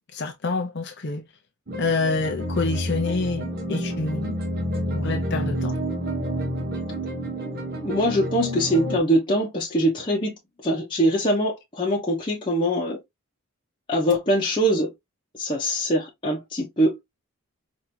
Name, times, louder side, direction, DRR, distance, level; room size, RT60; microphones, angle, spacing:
voice 1, 0.1-1.2 1.8-4.3 4.9-5.8, left 3 dB, 50° left, 0.6 m, -27 dB
sound 1, 1.7-9.0, equal, 45° right, 1.2 m, -29 dB
voice 2, 7.8-10.4 10.6-13.0 13.9-14.9 15.4-17.1, equal, 20° left, 1.0 m, -23 dB
4.8 x 2.8 x 2.8 m
head